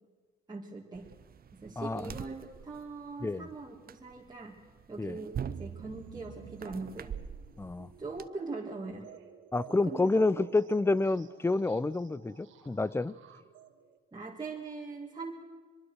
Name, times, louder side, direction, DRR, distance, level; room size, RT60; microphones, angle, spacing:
voice 1, 0.5-1.1 1.6-4.6 4.9-7.2 8.0-9.1 9.7-10.5 14.1-15.3, right 3 dB, 20° right, -2 dB, 2.3 m, -41 dB
sound 1, 0.9-8.3, right 8 dB, 50° right, 0.9 m, -45 dB
voice 2, 1.8-2.2 3.2-3.5 5.0-5.2 7.6-7.9 9.5-13.1, left 3 dB, 10° left, 21 dB, 0.6 m, -29 dB
sound 2, 5.4-14.0, right 8 dB, 80° right, 1.9 m, -51 dB
23.0 x 22.5 x 6.4 m, 1.5 s
cardioid pair, 90°, 20 cm